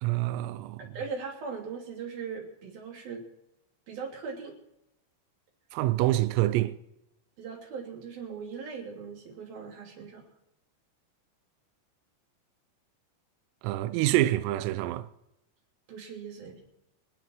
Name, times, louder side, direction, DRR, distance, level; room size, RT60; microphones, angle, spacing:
voice 1, 0.0-1.0 5.7-6.8 13.6-15.1, right 15 dB, 85° right, 3.5 m, -26 dB
voice 2, 0.8-3.3 3.9-4.6 7.4-10.2 15.9-16.6, right 5 dB, 50° right, 4.3 m, -39 dB
27.0 x 10.0 x 4.6 m
omnidirectional pair, 5.9 m